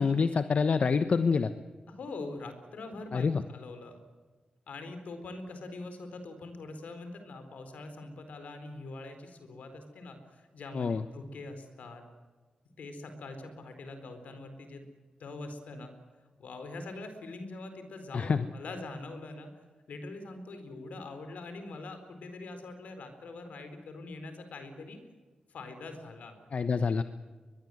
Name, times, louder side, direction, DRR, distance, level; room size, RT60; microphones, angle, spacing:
voice 1, 0.0-1.5 3.1-3.4 10.7-11.0 18.1-18.5 26.5-27.0, left 5 dB, 65° left, 11 dB, 1.1 m, -26 dB
voice 2, 1.9-4.0 4.7-12.0 12.8-15.9 16.4-19.5 19.9-25.0 25.5-26.4, left 2 dB, 85° left, 8 dB, 4.4 m, -43 dB
22.5 x 22.0 x 8.0 m, 1.4 s
cardioid pair, 50°, 2 cm